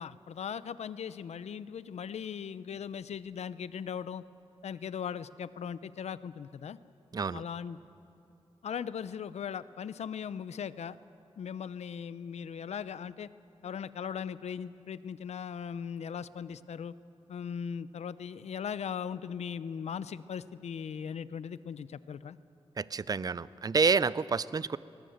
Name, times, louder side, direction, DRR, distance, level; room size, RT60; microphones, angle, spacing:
voice 1, 0.0-4.2 4.6-6.8 7.3-7.8 8.6-11.0 11.4-13.3 13.6-16.9 17.3-22.4, left 7 dB, 80° left, 16 dB, 0.6 m, -39 dB
voice 2, 22.8-24.8, right 5 dB, 35° right, 18 dB, 0.5 m, -28 dB
21.0 x 20.5 x 7.9 m, 2.8 s
wide cardioid pair, 100°, 11 cm